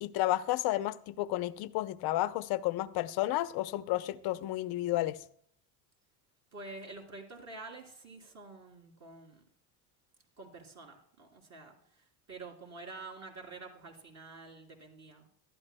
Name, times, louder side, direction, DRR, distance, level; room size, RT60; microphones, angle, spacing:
voice 1, 0.0-5.2, left 16 dB, 50° left, 0.7 m, -32 dB
voice 2, 6.5-9.4 10.4-15.3, right 3 dB, 35° right, 3.3 m, -48 dB
19.0 x 12.5 x 2.2 m
cardioid pair, 130°, 47 cm